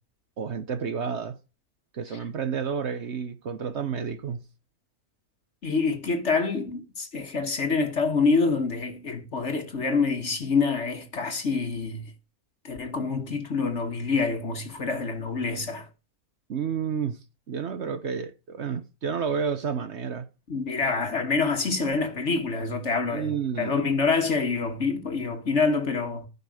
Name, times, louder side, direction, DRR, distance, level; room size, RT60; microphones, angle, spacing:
voice 1, 0.4-1.4 1.9-4.4 16.5-17.2 17.5-20.3 23.1-23.8, right 6 dB, 55° right, 1.0 m, -30 dB
voice 2, 5.6-12.1 12.6-15.9 20.5-26.3, left 4 dB, 50° left, 1.5 m, -26 dB
14.5 x 5.5 x 4.7 m
omnidirectional pair, 1.6 m